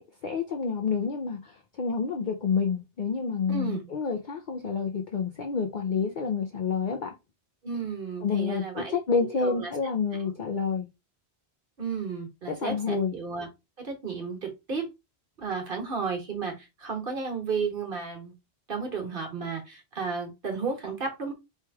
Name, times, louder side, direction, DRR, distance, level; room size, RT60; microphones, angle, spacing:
voice 1, 0.0-7.1 8.2-10.9 12.5-13.1, left 5 dB, 50° left, 0.7 m, -29 dB
voice 2, 3.5-3.8 7.6-9.7 10.2-10.3 11.8-13.5 13.8-14.9 15.4-18.3 18.7-21.3, right 5 dB, 50° right, 1.2 m, -33 dB
3.4 x 2.9 x 4.6 m
omnidirectional pair, 1.1 m